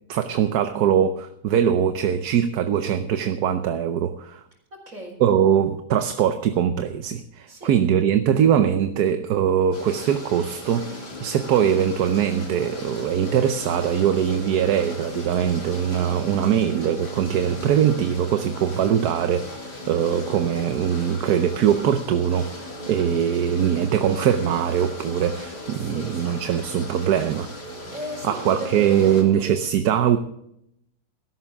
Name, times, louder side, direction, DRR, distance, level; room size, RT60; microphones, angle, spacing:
voice 1, 0.1-4.4 5.2-27.5 28.2-30.2, right 9 dB, 70° right, 8 dB, 1.3 m, -22 dB
voice 2, 4.7-5.2 7.5-7.7 25.7-26.4 27.9-29.4, right 1 dB, 50° right, 2 dB, 4.7 m, -36 dB
sound 1, 9.7-29.2, left 1 dB, 70° left, 4.0 m, -37 dB
16.5 x 14.0 x 3.5 m, 0.74 s
omnidirectional pair, 1.8 m